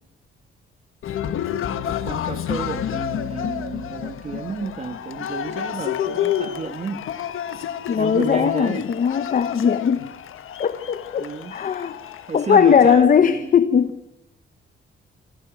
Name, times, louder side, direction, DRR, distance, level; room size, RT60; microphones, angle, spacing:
Cheering, 1.0-13.0, left 10 dB, 75° left, 1.5 m, -30 dB
voice 1, 1.7-7.1 7.9-8.9 11.2-11.6 12.3-13.5, right 5 dB, 30° right, 1.5 m, -31 dB
voice 2, 7.9-10.1 10.6-12.0 12.3-13.9, left 7 dB, 40° left, 0.9 m, -19 dB
26.5 x 26.0 x 6.2 m
wide cardioid pair, 175°, 21 cm